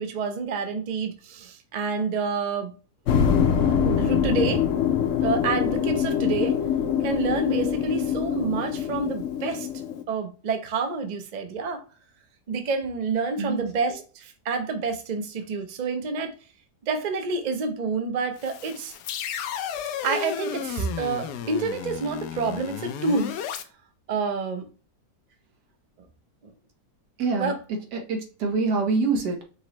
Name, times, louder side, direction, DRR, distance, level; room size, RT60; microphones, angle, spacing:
voice 1, 0.0-2.7 3.6-4.6 5.2-6.6 7.0-9.7 10.1-11.8 12.5-16.3 16.9-18.9 20.0-23.3 24.1-24.6 26.4-26.5 27.4-27.6, right 4 dB, 55° right, 0.4 m, -28 dB
sound 1, 3.1-10.0, left 8 dB, 65° left, 0.8 m, -24 dB
sound 2, 18.4-23.6, left 9 dB, 80° left, 1.2 m, -33 dB
voice 2, 27.2-27.5 27.9-29.4, right 4 dB, 90° right, 1.7 m, -25 dB
5.3 x 3.0 x 2.9 m
omnidirectional pair, 1.7 m